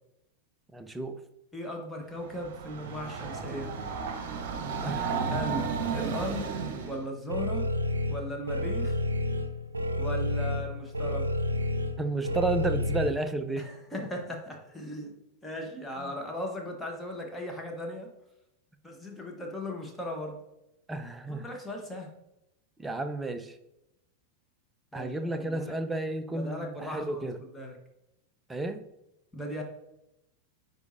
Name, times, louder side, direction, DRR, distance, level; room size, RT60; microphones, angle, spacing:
voice 1, 0.7-1.2 4.8-5.6 12.0-13.7 16.0-16.1 20.9-21.4 22.8-23.5 24.9-27.4 28.5-28.8, right 2 dB, 10° right, 8 dB, 0.6 m, -32 dB
voice 2, 1.5-3.7 5.3-7.7 8.1-9.0 10.0-11.3 13.6-15.1 15.4-18.1 18.8-20.4 21.3-22.1 24.9-25.8 26.3-27.8 29.3-29.6, left 1 dB, 5° left, 1 dB, 1.1 m, -38 dB
Train, 2.1-7.1, right 5 dB, 50° right, 1.0 m, -33 dB
sound 1, 7.3-13.1, left 1 dB, 75° right, 0.5 m, -30 dB
9.5 x 4.0 x 2.6 m, 0.86 s
figure-of-eight pair, 90°, 0 cm